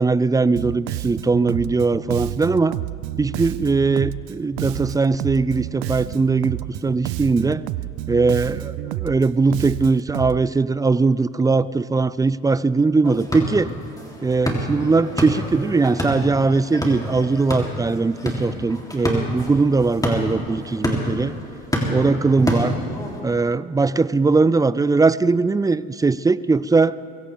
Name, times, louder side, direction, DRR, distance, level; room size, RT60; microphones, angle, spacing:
voice 1, 0.0-2.8 3.2-7.6 8.1-13.7 14.2-21.3 21.9-22.8 23.2-27.0, right 3 dB, 10° right, 18 dB, 0.3 m, -20 dB
Bass guitar, 0.6-10.4, right 17 dB, 85° right, 0.5 m, -30 dB
sound 1, 13.0-23.2, equal, 10° left, 3.2 m, -28 dB
23.0 x 16.0 x 3.5 m, 2.7 s
supercardioid pair, 70°, 31 cm